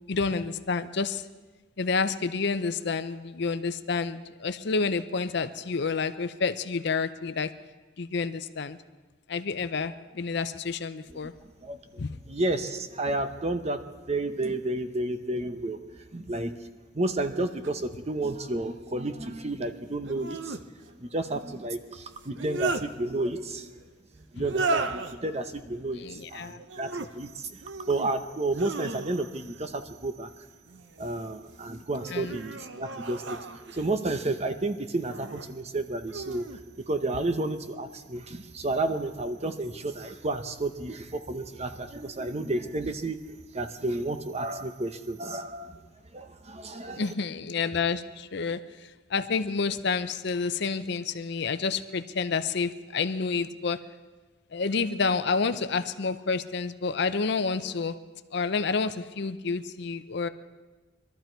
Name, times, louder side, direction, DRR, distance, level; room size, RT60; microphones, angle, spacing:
voice 1, 0.1-1.2 1.8-7.5 8.0-8.8 9.3-11.3 12.0-12.2 26.0-26.6 32.1-32.4 46.9-53.8 54.5-57.9 58.3-60.3, left 4 dB, 60° left, 11 dB, 0.6 m, -29 dB
voice 2, 11.6-12.0 12.3-13.8 14.1-15.8 16.1-16.6 16.9-20.6 21.0-23.8 24.3-27.6 27.9-30.3 31.0-36.5 36.9-43.2 43.5-45.8 46.1-47.1, right 2 dB, 35° right, 9 dB, 0.8 m, -31 dB
sound 1, 17.6-17.7 20.0-20.6 22.2-22.9 24.4-25.1 26.6-27.1 27.6-28.1 28.5-29.4 30.7-31.3 31.9-33.9 35.0-35.5 36.1-36.6, right 3 dB, 65° right, 0.8 m, -34 dB
22.5 x 13.0 x 4.5 m, 1.2 s
head